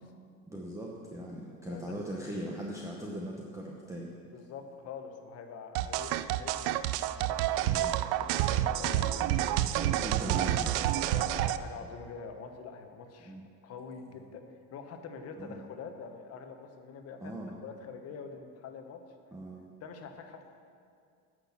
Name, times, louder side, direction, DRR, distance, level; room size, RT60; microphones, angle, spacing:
voice 1, 0.5-4.1 5.8-5.9 7.7-8.0 9.6-10.7 13.2-13.5 15.4-15.6 17.2-17.6 19.3-19.6, right 1 dB, 10° right, -2 dB, 0.8 m, -40 dB
voice 2, 1.7-2.0 4.3-9.5 11.0-13.3 13.6-14.4 14.7-17.3 17.6-19.0 19.8-20.4, left 5 dB, 45° left, 5 dB, 1.1 m, -45 dB
sound 1, 5.8-11.6, right 13 dB, 90° right, 0.5 m, -29 dB
11.5 x 6.2 x 7.3 m, 2.3 s
cardioid pair, 150°, 35 cm